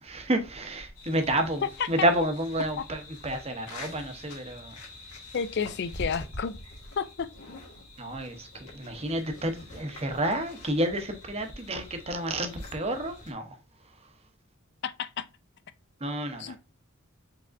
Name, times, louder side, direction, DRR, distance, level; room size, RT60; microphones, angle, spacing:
voice 1, 0.0-4.7 8.0-13.5 16.0-16.6, right 1 dB, 30° right, 0.8 m, -30 dB
sound 1, 1.0-13.3, left 1 dB, 90° left, 1.7 m, -45 dB
voice 2, 5.3-6.6 7.0-7.3 14.8-15.3 16.4-16.6, left 6 dB, 50° left, 0.4 m, -31 dB
4.8 x 3.4 x 2.5 m
head